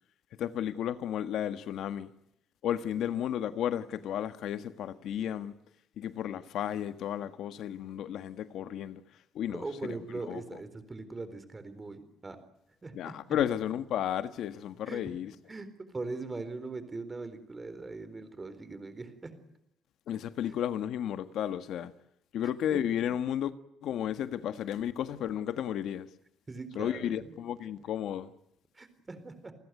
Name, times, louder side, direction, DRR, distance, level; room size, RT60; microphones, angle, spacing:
voice 1, 0.4-2.1 2.6-5.5 6.0-9.0 9.3-9.9 10.2-10.4 12.9-15.3 20.1-21.9 22.3-23.5 23.8-26.1 26.7-28.3, left 10 dB, 70° left, 1.5 m, -33 dB
voice 2, 9.5-12.4 12.8-13.4 14.9-15.0 15.5-19.4 22.4-22.8 26.5-27.4 28.7-29.5, right 3 dB, 20° right, 4.1 m, -41 dB
30.0 x 20.0 x 9.5 m
cardioid pair, 145°, 0 cm